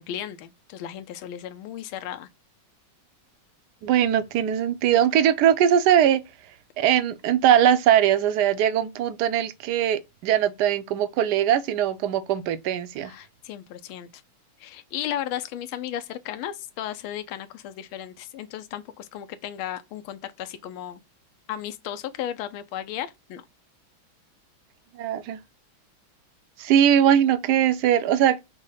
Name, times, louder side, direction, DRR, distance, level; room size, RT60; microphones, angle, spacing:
voice 1, 0.0-2.3 13.0-14.2 14.6-21.0 21.5-23.4, left 11 dB, 90° left, 1.4 m, -35 dB
voice 2, 3.8-6.2 6.8-13.1 25.0-25.4 26.6-28.4, right 10 dB, 70° right, 1.0 m, -21 dB
5.3 x 2.1 x 3.7 m
omnidirectional pair, 2.2 m